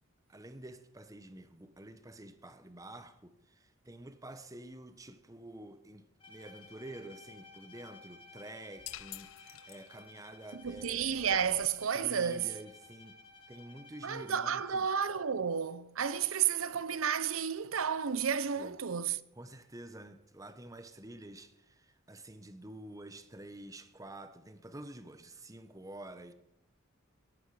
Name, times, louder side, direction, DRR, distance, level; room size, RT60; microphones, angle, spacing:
voice 1, 0.3-11.2 11.9-13.2 13.5-15.0 18.6-18.8 19.3-26.3, right 1 dB, 15° right, 0.9 m, -49 dB
Bowed string instrument, 6.2-15.0, left 4 dB, 25° left, 2.2 m, -56 dB
sound 1, 8.4-9.0 9.5-9.6 10.2-10.3 10.6-11.7, equal, 35° right, 6.0 m, -58 dB
sound 2, 8.9-10.3, left 16 dB, 70° left, 0.4 m, -47 dB
voice 2, 10.6-12.5 14.0-19.2, right 7 dB, 75° right, 0.7 m, -31 dB
17.0 x 14.5 x 4.9 m
head